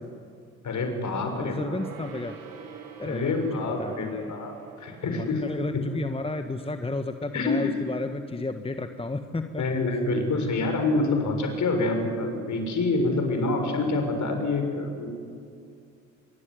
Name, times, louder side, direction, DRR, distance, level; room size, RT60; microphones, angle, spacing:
voice 1, 0.6-1.8 3.0-5.4 7.3-7.7 9.6-15.1, left 3 dB, 50° left, 4 dB, 7.0 m, -27 dB
voice 2, 1.4-2.4 3.0-3.3 3.8-4.3 5.1-9.6 13.1-13.4, left 2 dB, 15° left, 8 dB, 1.6 m, -32 dB
Gong, 1.5-7.4 7.7-7.8, right 5 dB, 55° right, 5.1 m, -45 dB
25.5 x 23.0 x 9.8 m, 2.4 s
hypercardioid pair, 50°, 38 cm